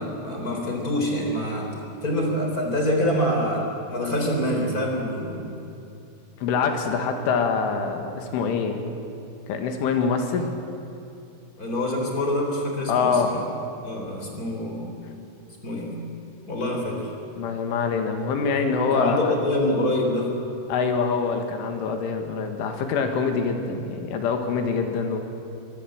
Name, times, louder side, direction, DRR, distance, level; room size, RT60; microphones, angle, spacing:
voice 1, 0.0-1.7 2.0-5.5 11.6-13.4 13.8-14.9 15.6-16.0 16.5-17.1 18.8-20.3, left 1 dB, 20° left, 0 dB, 3.6 m, -26 dB
voice 2, 6.4-8.8 9.5-10.5 12.9-13.3 17.4-19.3 20.7-25.2, left 5 dB, 75° left, 5 dB, 4.3 m, -25 dB
23.5 x 22.0 x 7.8 m, 2.7 s
omnidirectional pair, 5.8 m